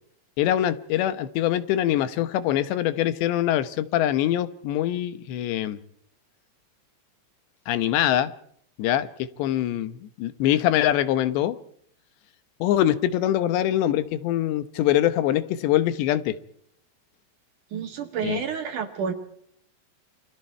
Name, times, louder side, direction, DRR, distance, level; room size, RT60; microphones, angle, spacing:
voice 1, 0.4-5.8 7.7-8.3 8.8-9.1 9.4-11.6 12.6-16.4 18.2-18.4, left 12 dB, 80° left, 13 dB, 3.2 m, -23 dB
voice 2, 17.7-19.1, right 7 dB, 55° right, 6 dB, 2.6 m, -29 dB
29.0 x 24.0 x 4.5 m, 0.66 s
omnidirectional pair, 5.1 m